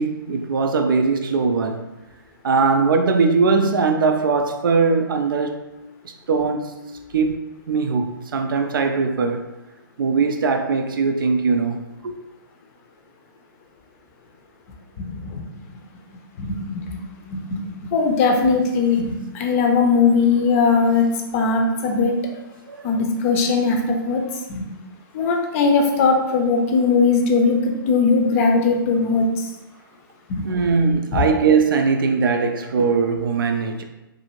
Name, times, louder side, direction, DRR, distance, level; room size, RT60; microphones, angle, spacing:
voice 1, 0.0-1.9 2.4-5.6 6.0-6.8 7.1-7.4 7.7-9.4 10.0-11.8 12.0-12.1 22.7-22.8 30.4-33.8, right 4 dB, 70° right, 0.4 m, -20 dB
voice 2, 15.0-15.4 16.4-17.4 17.9-21.1 21.3-22.1 22.8-24.2 24.5-24.6 25.1-29.5 30.3-30.5, left 4 dB, 35° left, 0.5 m, -19 dB
2.7 x 2.5 x 2.9 m
hypercardioid pair, 130°, 12 cm